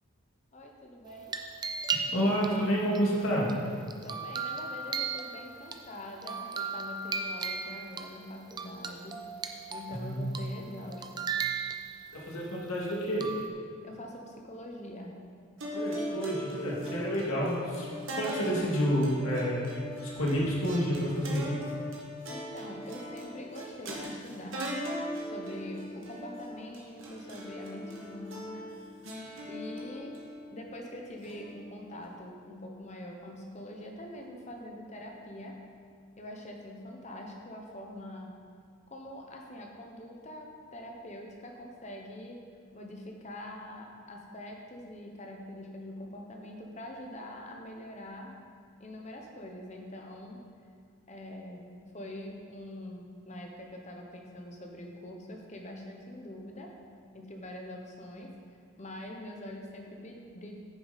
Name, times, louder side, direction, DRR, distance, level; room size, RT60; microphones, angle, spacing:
voice 1, 0.5-1.3 4.0-9.2 9.7-11.3 13.8-15.2 22.3-24.7 25.3-28.7 29.5-30.1 30.5-35.6 36.2-38.3 38.9-42.4 42.7-48.3 48.8-50.4 51.1-56.7 57.1-60.6, left 1 dB, 30° left, 1 dB, 0.9 m, -44 dB
sound 1, 1.0-2.4 2.9-5.8 6.2-8.1 8.5-10.0 10.3-10.6 10.9-12.2 13.2-13.5, right 5 dB, 20° right, 0.4 m, -36 dB
voice 2, 2.1-3.5 9.9-10.2 12.1-13.3 15.7-17.9 18.1-19.7 20.0-21.5, equal, 80° left, -5 dB, 2.0 m, -29 dB
sound 2, 15.6-32.1, equal, 65° right, 1.7 m, -40 dB
10.0 x 6.7 x 4.1 m, 2.2 s
head